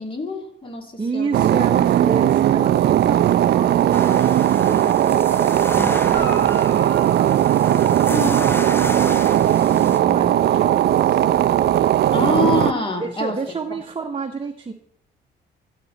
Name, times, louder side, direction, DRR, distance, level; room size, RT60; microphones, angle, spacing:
voice 1, 0.0-1.5 8.0-8.5 12.1-13.8, left 3 dB, 25° left, 3 dB, 2.5 m, -26 dB
voice 2, 1.0-6.9 7.7-8.3 9.7-11.3 13.0-14.7, right 4 dB, 25° right, 4 dB, 1.0 m, -30 dB
sound 1, 1.3-12.7, right 11 dB, 55° right, 0.4 m, -18 dB
sound 2, 3.9-10.0, left 1 dB, 10° left, 0.7 m, -33 dB
Guitar, 6.1-8.6 12.5-12.6, left 2 dB, 80° left, 3.8 m, -37 dB
13.5 x 8.2 x 4.0 m, 0.66 s
cardioid pair, 90°, 20 cm